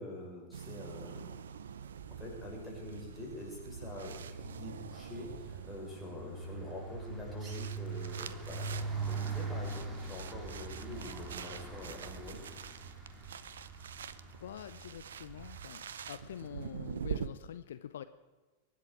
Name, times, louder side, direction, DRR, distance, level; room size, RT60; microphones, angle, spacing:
voice 1, 0.0-1.5 2.2-12.4, left 1 dB, 10° left, -3 dB, 6.8 m, -45 dB
sound 1, 0.5-17.3, right 8 dB, 65° right, 0.7 m, -46 dB
sound 2, 1.9-5.7 6.1-10.7 11.1-11.6 11.9-15.7, right 10 dB, 45° right, 1.3 m, -56 dB
sound 3, 3.0-3.1 3.4-16.5, right 4 dB, 15° right, 3.5 m, -43 dB
voice 2, 14.4-18.0, left 10 dB, 60° left, 12 dB, 0.6 m, -46 dB
23.5 x 11.0 x 4.9 m, 1.3 s
figure-of-eight pair, 90°, 0 cm